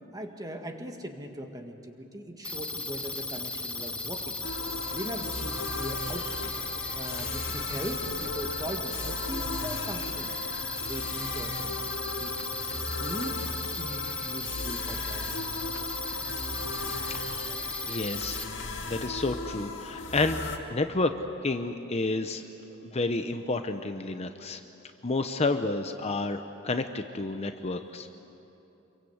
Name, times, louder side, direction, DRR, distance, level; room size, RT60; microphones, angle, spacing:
voice 1, 0.1-4.4 4.9-6.5 7.0-10.3 10.8-11.9 12.2-12.4 12.7-13.5 13.8-15.5 16.2-16.3, equal, 20° right, 4 dB, 1.8 m, -39 dB
sound 1, 2.4-18.4, left 2 dB, 5° left, 0.9 m, -36 dB
sound 2, 3.7-19.1, right 1 dB, 60° right, 3.6 m, -51 dB
sound 3, 4.4-20.6, left 3 dB, 60° left, 2.1 m, -37 dB
voice 2, 17.9-18.4 18.9-21.1 21.4-22.4 22.8-24.6 25.0-28.1, left 2 dB, 30° left, 7 dB, 0.8 m, -30 dB
27.0 x 23.0 x 8.0 m, 2.9 s
head